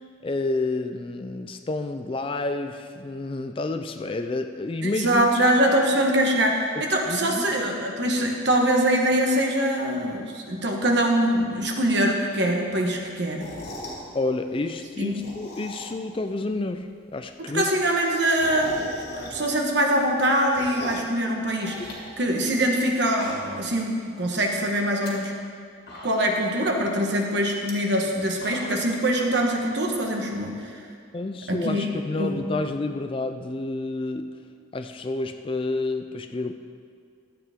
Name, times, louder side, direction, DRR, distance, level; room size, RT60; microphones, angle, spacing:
voice 1, 0.2-5.3 6.7-7.5 14.1-17.7 21.8-21.9 31.1-34.4 34.7-36.5, left 2 dB, 25° left, 7 dB, 0.3 m, -29 dB
voice 2, 5.0-13.5 15.0-15.2 17.5-21.8 22.2-25.3 26.0-30.8 31.5-31.9 32.2-32.4, right 1 dB, 55° right, 1 dB, 1.3 m, -23 dB
sound 1, 13.3-14.1 15.0-16.2 16.5-16.6 16.8-16.9 17.1-17.2 17.5-19.7 20.0-21.1 21.6-22.8 23.1-23.7 24.0-24.1 24.8-25.1 25.6-25.7 25.9-26.5 27.5-27.7 28.2-28.9, left 1 dB, 50° left, 1.9 m, -40 dB
13.5 x 8.7 x 3.6 m, 2.2 s
head